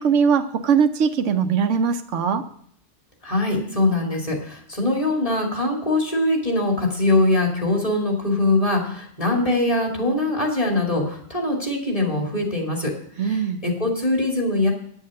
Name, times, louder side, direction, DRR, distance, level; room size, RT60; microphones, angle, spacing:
voice 1, 0.0-2.4 13.2-13.6, right 6 dB, 85° right, 7 dB, 1.1 m, -20 dB
voice 2, 3.2-12.9 13.2-14.7, left 2 dB, 30° left, -1 dB, 2.5 m, -22 dB
9.8 x 7.3 x 6.5 m, 0.65 s
omnidirectional pair, 1.2 m